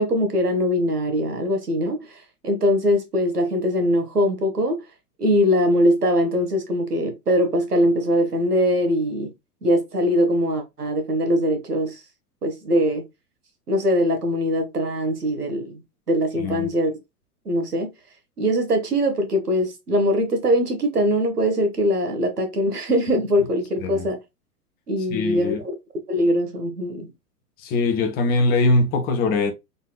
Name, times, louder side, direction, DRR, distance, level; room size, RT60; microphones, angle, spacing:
voice 1, 0.0-4.8 5.2-9.3 9.6-12.0 12.4-13.1 13.7-16.9 17.4-17.9 18.4-24.2 24.9-25.6 26.1-27.1, equal, 85° right, 1.2 m, -22 dB
voice 2, 25.1-25.6 27.6-29.5, left 2 dB, 20° left, 0.6 m, -21 dB
3.8 x 2.8 x 2.2 m
figure-of-eight pair, 100°, 45 cm